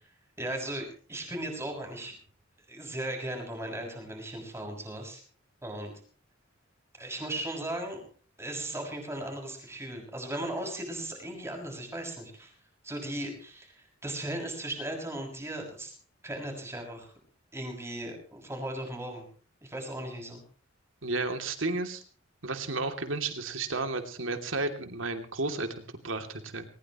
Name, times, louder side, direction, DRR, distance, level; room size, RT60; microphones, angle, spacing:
voice 1, 0.4-2.1 2.7-5.2 5.6-5.9 7.0-8.0 8.4-12.5 12.8-15.9 16.2-17.1 17.5-19.2 19.6-20.4, right 1 dB, 15° right, 2 dB, 6.6 m, -37 dB
voice 2, 21.0-22.0 22.4-26.6, right 3 dB, 75° right, 7 dB, 2.8 m, -32 dB
21.0 x 20.0 x 3.1 m, 0.43 s
head